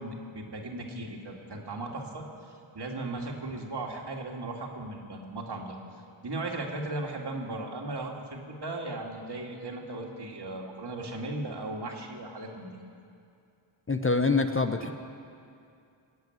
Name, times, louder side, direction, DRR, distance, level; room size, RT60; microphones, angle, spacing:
voice 1, 0.0-5.8 6.2-12.7, right 2 dB, 55° right, 1 dB, 2.6 m, -37 dB
voice 2, 13.9-14.9, left 3 dB, 25° left, 6 dB, 0.9 m, -25 dB
19.5 x 8.0 x 9.3 m, 2.4 s
cardioid pair, 55°, 49 cm